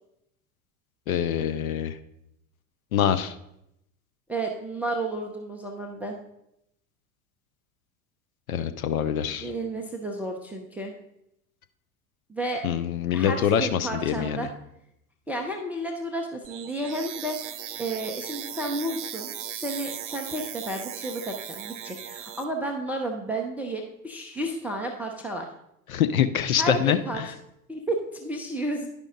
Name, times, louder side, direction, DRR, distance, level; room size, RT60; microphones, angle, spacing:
voice 1, 1.1-1.9 2.9-3.3 8.5-9.5 12.6-14.5 25.9-27.3, left 9 dB, 65° left, 9 dB, 0.7 m, -25 dB
voice 2, 4.3-6.2 9.4-10.9 12.3-12.7 13.1-14.5 15.3-25.5 26.6-27.2 27.7-28.9, right 1 dB, 5° right, 1 dB, 0.3 m, -32 dB
sound 1, 16.4-22.4, right 10 dB, 50° right, 0.7 m, -37 dB
10.5 x 5.1 x 3.6 m, 0.81 s
figure-of-eight pair, 75°, 45 cm